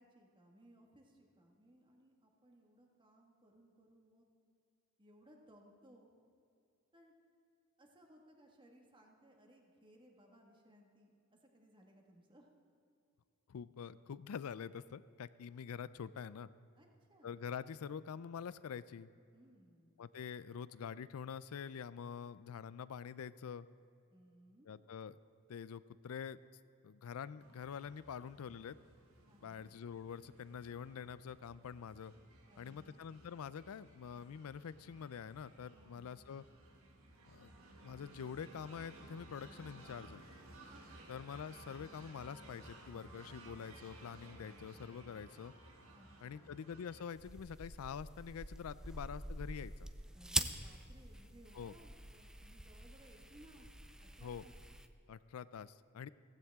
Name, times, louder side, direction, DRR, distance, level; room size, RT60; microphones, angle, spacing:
voice 1, 0.0-4.3 5.0-6.1 6.9-7.1 7.8-12.5 16.7-17.4 19.3-20.0 24.1-24.7 29.2-29.7 32.5-33.1 35.7-36.2 40.7-41.2 45.9-46.6 50.1-53.7 54.0-54.5, right 1 dB, 25° right, 1 dB, 1.7 m, -63 dB
voice 2, 13.5-16.5 17.2-19.1 20.0-23.7 24.7-25.2 25.5-26.4 26.8-28.8 29.4-32.1 32.6-36.4 37.3-37.5 37.8-40.2 41.1-45.5 46.2-49.9 51.5-51.7 54.2-54.4 55.1-56.1, left 7 dB, 90° left, 16 dB, 0.4 m, -46 dB
sound 1, 27.4-47.0, right 2 dB, 75° right, 1.7 m, -58 dB
sound 2, 47.2-54.9, right 1 dB, 5° right, 0.5 m, -44 dB
15.5 x 15.5 x 3.6 m, 2.5 s
head